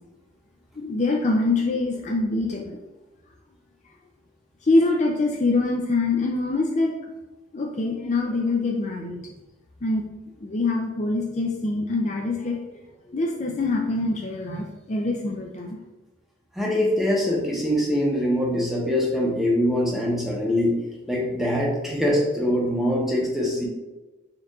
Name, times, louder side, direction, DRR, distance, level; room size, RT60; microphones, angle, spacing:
voice 1, 0.8-2.8 4.6-6.9 7.5-9.2 9.8-10.1 10.4-12.6 13.1-15.8, left 2 dB, 35° left, 0 dB, 0.5 m, -24 dB
voice 2, 16.5-20.8 21.1-23.7, left 1 dB, ahead, -4 dB, 0.9 m, -23 dB
4.5 x 2.5 x 4.7 m, 1.1 s
head